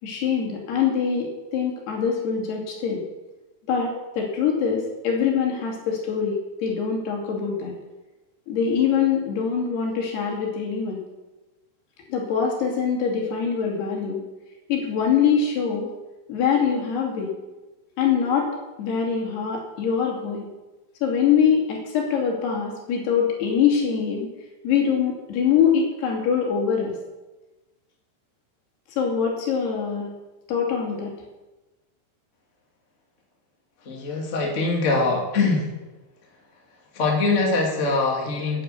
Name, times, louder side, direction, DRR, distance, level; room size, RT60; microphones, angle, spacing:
voice 1, 0.0-3.0 3.7-6.3 6.6-7.7 8.5-11.0 12.1-14.2 14.7-15.9 16.3-17.3 18.0-18.5 18.8-20.5 21.0-24.3 24.6-26.9 29.0-30.1 30.5-31.1, left 7 dB, 75° left, -1 dB, 4.6 m, -23 dB
voice 2, 33.8-35.7 36.9-38.6, left 3 dB, 20° left, -1 dB, 2.2 m, -23 dB
10.5 x 10.0 x 7.9 m, 1.1 s
omnidirectional pair, 4.7 m